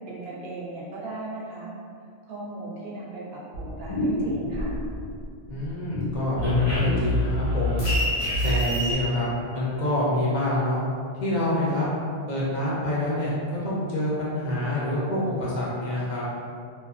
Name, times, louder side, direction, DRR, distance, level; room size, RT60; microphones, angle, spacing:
voice 1, 0.1-1.7 2.3-4.8, right 2 dB, 75° right, -6 dB, 0.9 m, -37 dB
sound 1, 3.5-5.2 5.6-8.9, left 1 dB, 85° left, 1.2 m, -26 dB
voice 2, 5.5-7.8 8.4-10.8 11.2-11.9 12.3-16.2, left 1 dB, 55° left, -7 dB, 0.6 m, -26 dB
2.6 x 2.3 x 2.3 m, 2.2 s
omnidirectional pair, 1.0 m